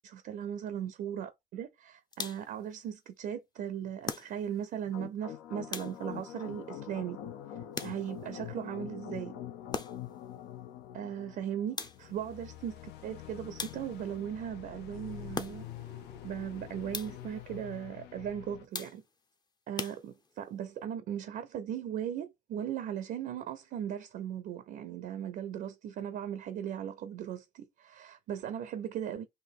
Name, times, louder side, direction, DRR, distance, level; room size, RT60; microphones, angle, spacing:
voice 1, 0.1-7.2 7.8-9.3 10.9-15.7 16.2-19.0 19.7-29.3, right 9 dB, 60° right, 0.5 m, -38 dB
sound 1, 2.1-2.6 4.0-4.7 5.7-6.3 7.7-8.3 9.7-10.2 11.8-12.3 13.6-14.2 15.3-15.9 16.9-17.4 18.7-19.3 19.8-20.5, left 4 dB, 25° left, 0.6 m, -41 dB
sound 2, 4.9-18.7, left 11 dB, 80° left, 0.6 m, -45 dB
sound 3, 14.9-17.3, left 3 dB, 55° left, 1.3 m, -53 dB
4.1 x 2.6 x 3.5 m
cardioid pair, 110°, 17 cm